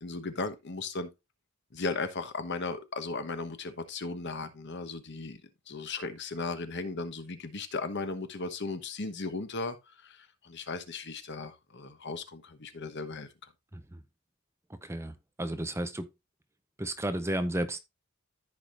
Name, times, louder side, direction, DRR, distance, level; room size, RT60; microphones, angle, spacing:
voice 1, 0.0-1.1 1.7-5.4 5.7-9.8 10.0-13.3, left 3 dB, 60° left, 1.1 m, -36 dB
voice 2, 14.8-15.1 15.4-16.0 16.8-17.8, right 1 dB, 15° right, 0.7 m, -32 dB
14.0 x 4.9 x 2.5 m
head